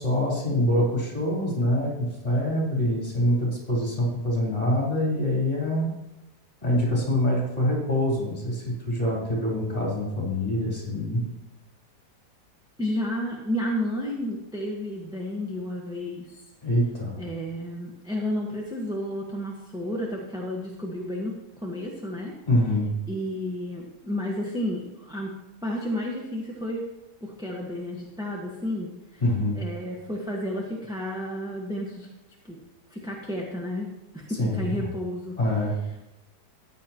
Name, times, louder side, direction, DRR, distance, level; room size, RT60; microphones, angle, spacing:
voice 1, 0.0-5.9 6.6-11.3 16.6-17.2 22.5-22.9 29.2-29.6 34.4-34.9 35.4-35.8, left 1 dB, 20° left, -4 dB, 4.1 m, -25 dB
voice 2, 12.8-16.4 17.2-22.3 23.1-25.3 25.6-26.8 27.2-29.2 29.5-32.1 32.4-32.6 32.9-35.4, left 1 dB, 5° right, -3 dB, 1.2 m, -31 dB
14.5 x 9.8 x 3.0 m, 0.96 s
omnidirectional pair, 1.8 m